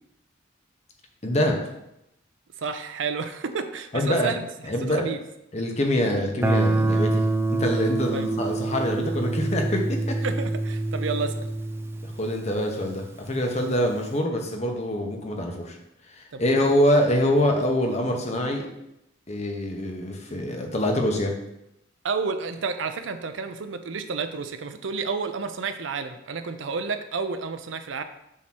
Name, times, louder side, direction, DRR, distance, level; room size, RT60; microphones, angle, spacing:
voice 1, 1.2-1.6 3.9-4.3 4.7-5.1 5.5-10.2 12.0-15.8 16.1-18.7 19.3-21.3, left 1 dB, 35° left, 2 dB, 0.9 m, -25 dB
voice 2, 2.6-4.5 4.9-5.2 8.1-8.3 10.2-11.5 16.3-16.6 22.0-28.0, right 4 dB, 70° right, 9 dB, 0.6 m, -30 dB
Guitar, 6.4-13.1, right 2 dB, 10° right, 0.4 m, -26 dB
7.3 x 2.9 x 6.0 m, 0.85 s
head